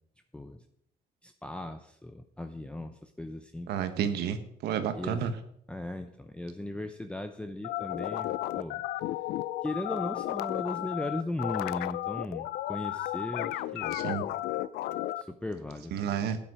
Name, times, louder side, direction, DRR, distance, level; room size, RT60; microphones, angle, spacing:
voice 1, 0.3-0.6 1.2-3.7 4.9-5.3 5.7-8.8 9.6-14.0 14.3-14.4 15.2-16.0, left 1 dB, 5° left, 7 dB, 0.7 m, -37 dB
voice 2, 3.7-5.3 13.9-14.2 15.9-16.4, right 8 dB, 75° right, 10 dB, 1.4 m, -31 dB
sound 1, 7.6-15.2, left 15 dB, 75° left, 0.5 m, -33 dB
12.5 x 9.0 x 4.9 m, 0.71 s
cardioid pair, 110°, 17 cm